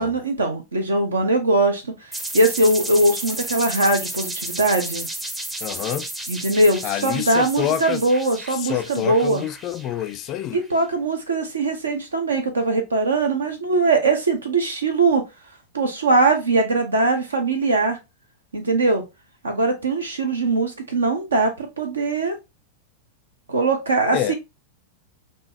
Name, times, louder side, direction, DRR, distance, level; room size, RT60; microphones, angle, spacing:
voice 1, 0.0-1.9 2.3-5.1 6.3-9.4 10.5-15.2 15.7-18.0 18.5-19.0 19.4-22.4 23.5-24.3, right 2 dB, 75° right, 0.9 m, -21 dB
sound 1, 2.1-10.6, right 1 dB, 10° right, 0.6 m, -33 dB
voice 2, 5.6-6.1 6.8-8.0 8.6-10.6 24.1-24.3, left 12 dB, 40° left, 0.3 m, -27 dB
4.6 x 2.6 x 2.9 m
figure-of-eight pair, 90°, 0 cm